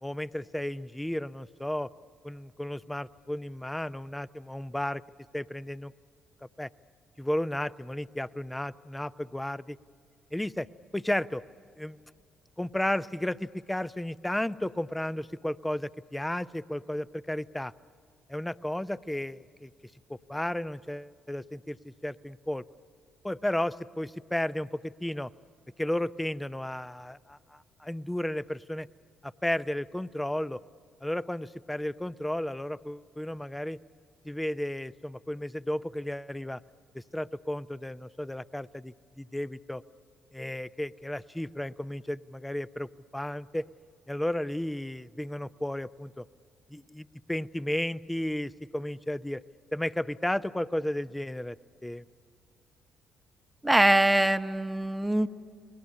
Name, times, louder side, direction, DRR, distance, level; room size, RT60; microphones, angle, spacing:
voice 1, 0.0-1.9 2.2-5.0 5.3-5.9 6.4-6.7 7.2-9.8 10.3-10.7 10.9-11.4 11.8-12.0 12.6-17.7 18.3-19.7 20.1-22.6 23.2-25.3 25.8-28.9 29.2-30.6 31.0-33.8 34.2-36.6 36.9-39.8 40.3-43.7 44.1-46.3 46.7-49.4 49.7-51.6 51.8-52.0, left 1 dB, 10° left, 15 dB, 0.7 m, -33 dB
voice 2, 53.6-55.3, right 1 dB, 10° right, 10 dB, 1.1 m, -23 dB
29.5 x 20.5 x 9.8 m, 2.3 s
hypercardioid pair, 50°, 0 cm